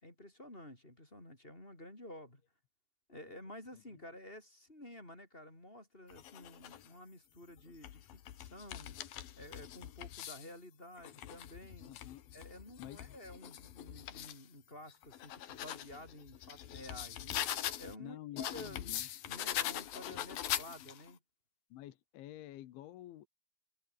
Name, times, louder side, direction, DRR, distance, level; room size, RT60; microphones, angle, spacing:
voice 1, 0.0-2.4 3.1-11.9 12.3-19.0 19.3-21.2, left 1 dB, 10° left, 4.8 m, -52 dB
sound 1, 6.1-6.9 7.6-10.5 11.0-14.4 14.9-18.0 18.4-21.1, left 12 dB, 60° left, 3.0 m, -42 dB
voice 2, 11.8-12.2 12.8-13.2 18.0-19.1 21.7-23.3, left 14 dB, 80° left, 3.9 m, -50 dB
omnidirectional pair, 5.3 m